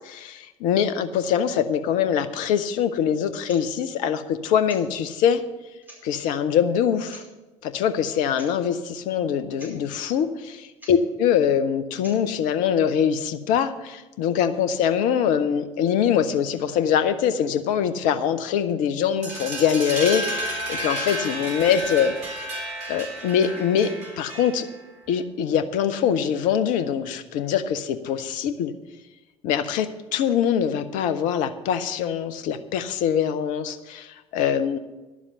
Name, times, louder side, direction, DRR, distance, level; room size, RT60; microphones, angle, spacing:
voice 1, 0.2-5.4 6.0-7.2 7.6-22.5 22.9-23.9 24.2-24.7 25.1-28.7 29.4-34.8, left 8 dB, 55° left, 12 dB, 0.8 m, -23 dB
sound 1, 3.4-3.7 4.6-4.9 5.5-5.6 5.8-6.3 7.1-7.3 8.3-8.5 8.8-8.9 9.2-9.3 9.5-9.8 10.8-11.0 12.0-12.2, equal, 10° right, 5.0 m, -46 dB
sound 2, 19.2-24.8, right 1 dB, 50° right, 3.9 m, -31 dB
11.0 x 7.3 x 6.9 m, 1.1 s
figure-of-eight pair, 55°, 16 cm